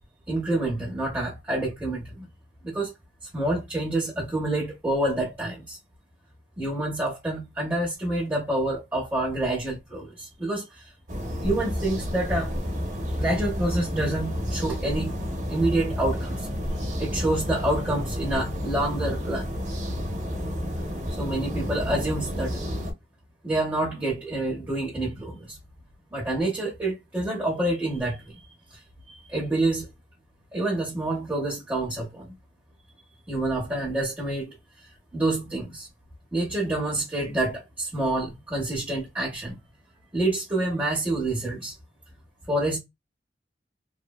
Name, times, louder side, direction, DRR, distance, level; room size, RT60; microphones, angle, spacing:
voice 1, 0.3-2.3 2.6-2.9 3.3-5.8 6.6-10.9 11.4-12.5 13.1-15.2 15.5-16.5 17.0-19.5 21.2-22.6 23.4-25.6 26.1-28.3 28.7-28.8 29.1-29.9 30.5-32.3 33.3-34.5 35.1-35.9 36.3-39.6 40.1-41.7 42.5-42.8, right 1 dB, 10° right, 0.8 m, -27 dB
sound 1, 11.1-22.9, equal, 45° right, 0.7 m, -30 dB
3.2 x 2.0 x 2.2 m
head